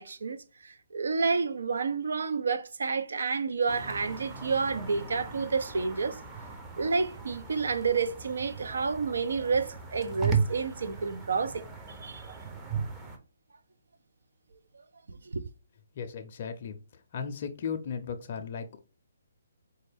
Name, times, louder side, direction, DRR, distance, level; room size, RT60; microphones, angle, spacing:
voice 1, 0.0-6.2 6.8-11.7 12.0-12.4 15.2-15.4, right 4 dB, 75° right, 0.5 m, -30 dB
sound 1, 3.7-13.2, right 5 dB, 15° right, 0.6 m, -36 dB
voice 2, 16.0-16.8 17.1-18.8, left 6 dB, 45° left, 0.5 m, -36 dB
4.2 x 2.2 x 3.4 m
hypercardioid pair, 155°, 0 cm